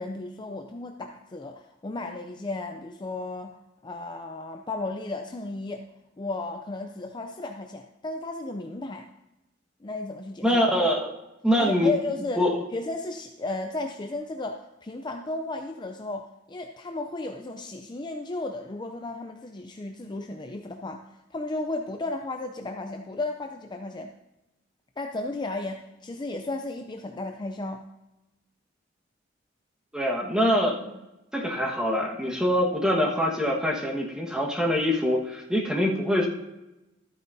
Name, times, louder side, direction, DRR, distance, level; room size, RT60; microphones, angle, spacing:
voice 1, 0.0-5.8 6.2-9.1 9.8-10.6 11.6-12.4 12.7-21.0 21.3-24.1 25.0-27.8, left 2 dB, 25° left, 4 dB, 0.5 m, -34 dB
voice 2, 10.4-11.1 11.4-11.9 12.4-12.6 29.9-31.0 31.3-36.3, equal, 5° right, -2 dB, 1.4 m, -24 dB
13.5 x 9.1 x 2.7 m, 0.97 s
head